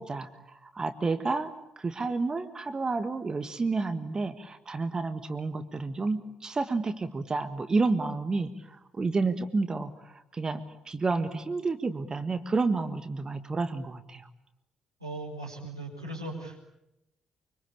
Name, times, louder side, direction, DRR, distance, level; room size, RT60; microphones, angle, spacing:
voice 1, 0.0-14.3, right 3 dB, 30° right, 10 dB, 1.6 m, -30 dB
voice 2, 15.0-16.7, right 2 dB, 85° right, -3 dB, 5.9 m, -38 dB
26.0 x 25.0 x 8.7 m, 0.86 s
figure-of-eight pair, 45°, 3 cm